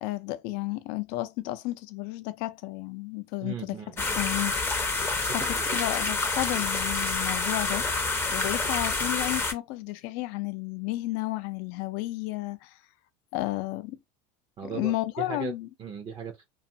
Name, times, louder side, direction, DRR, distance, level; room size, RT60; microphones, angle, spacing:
voice 1, 0.0-3.8 4.1-4.5 5.3-7.9 8.3-12.8 13.3-14.0 14.7-15.7, left 18 dB, 60° left, 0.5 m, -32 dB
voice 2, 3.4-4.4 5.5-5.8 14.6-15.5 15.8-16.5, right 7 dB, 30° right, 0.6 m, -38 dB
sound 1, 4.0-9.5, left 3 dB, 15° left, 0.6 m, -28 dB
2.5 x 2.4 x 2.7 m
supercardioid pair, 120°, 18 cm